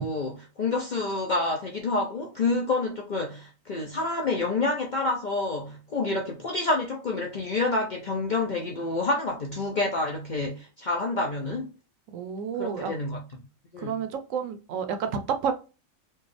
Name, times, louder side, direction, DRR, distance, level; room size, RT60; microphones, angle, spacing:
voice 1, 0.0-11.7 12.6-13.2 13.7-14.0, left 3 dB, 55° left, 0.5 m, -28 dB
voice 2, 12.1-12.9 13.8-15.5, right 6 dB, 75° right, 0.9 m, -30 dB
4.4 x 2.4 x 3.2 m
omnidirectional pair, 1.4 m